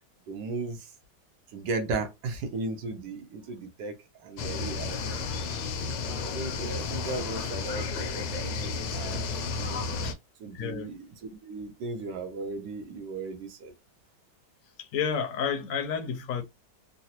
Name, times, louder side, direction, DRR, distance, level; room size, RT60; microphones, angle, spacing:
voice 1, 0.3-0.9 1.5-5.3 6.0-10.0 10.4-13.7, right 3 dB, 75° right, 1.4 m, -36 dB
sound 1, 4.4-10.1, left 4 dB, 80° left, 1.2 m, -32 dB
voice 2, 10.5-10.9 14.8-16.4, left 7 dB, 65° left, 0.9 m, -30 dB
3.8 x 2.0 x 2.8 m
omnidirectional pair, 1.9 m